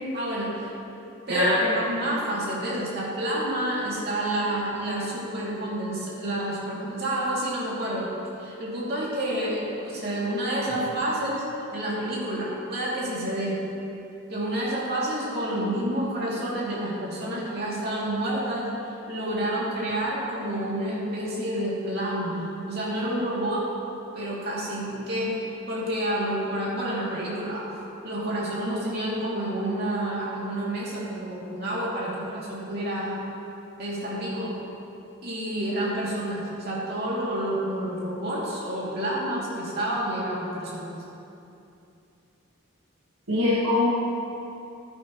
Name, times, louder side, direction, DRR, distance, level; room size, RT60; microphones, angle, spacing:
voice 1, 0.1-0.7 1.3-8.1 8.4-11.4 11.7-13.6 14.3-23.7 24.1-25.3 25.7-27.6 28.0-33.2 33.8-34.5 35.2-40.9, right 1 dB, 45° right, -6 dB, 2.8 m, -29 dB
voice 2, 1.3-1.8 43.3-43.9, left 2 dB, 90° right, -9 dB, 1.9 m, -22 dB
15.0 x 10.5 x 3.1 m, 2.8 s
head